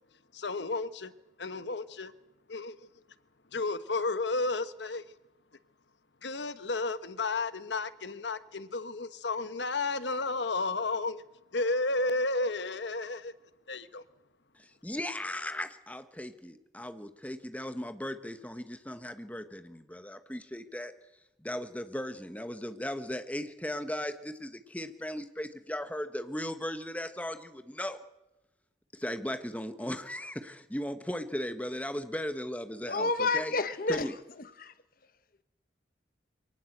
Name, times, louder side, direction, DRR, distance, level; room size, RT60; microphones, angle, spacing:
voice 1, 0.3-1.1 1.4-2.1 2.5-2.8 3.5-5.0 6.2-11.2 11.5-13.3 13.7-14.0, left 3 dB, 75° left, 13 dB, 1.2 m, -32 dB
voice 2, 14.6-20.9 21.4-28.0 28.9-33.5 33.9-34.1, left 1 dB, 10° left, 9 dB, 1.3 m, -37 dB
voice 3, 32.9-34.7, left 3 dB, 50° left, 13 dB, 1.2 m, -30 dB
24.0 x 18.5 x 8.0 m, 0.95 s
head